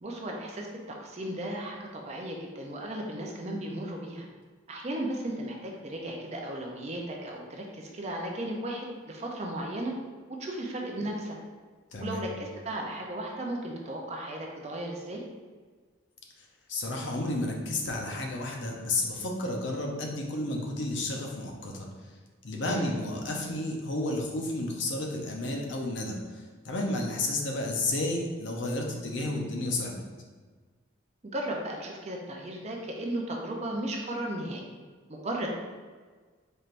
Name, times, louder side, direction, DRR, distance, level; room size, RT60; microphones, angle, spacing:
voice 1, 0.0-4.3 4.7-9.9 10.3-11.4 12.0-15.2 22.6-22.9 31.2-34.6 35.1-35.5, right 1 dB, 35° right, 0 dB, 0.5 m, -35 dB
voice 2, 11.9-12.3 16.7-21.9 22.4-30.0, left 2 dB, 65° left, 0 dB, 0.6 m, -32 dB
4.3 x 3.3 x 2.5 m, 1.5 s
head